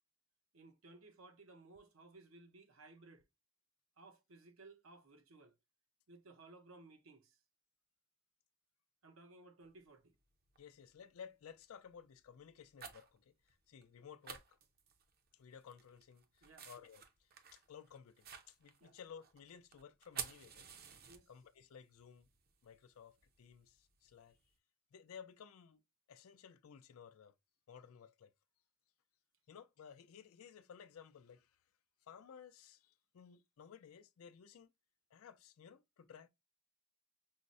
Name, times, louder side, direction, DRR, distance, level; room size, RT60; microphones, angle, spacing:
voice 1, 0.5-3.2 4.0-5.6 6.1-7.4 9.0-10.1 16.4-16.7 18.8-19.0 21.1-21.3, right 3 dB, 80° right, 0.7 m, -59 dB
sound 1, 9.6-9.7 10.5-10.9 11.3-11.6 12.4-13.2 13.5-13.6 13.8-13.9 14.2-15.3 15.6-21.6 22.0-24.5, right 7 dB, 45° right, 0.6 m, -51 dB
voice 2, 10.6-14.6 15.3-20.7 21.3-22.3 22.6-24.4 24.9-25.8 26.1-27.3 27.7-28.3 29.5-31.6 32.1-34.7 35.1-36.3, left 7 dB, 90° left, 0.4 m, -56 dB
5.5 x 2.0 x 2.5 m
head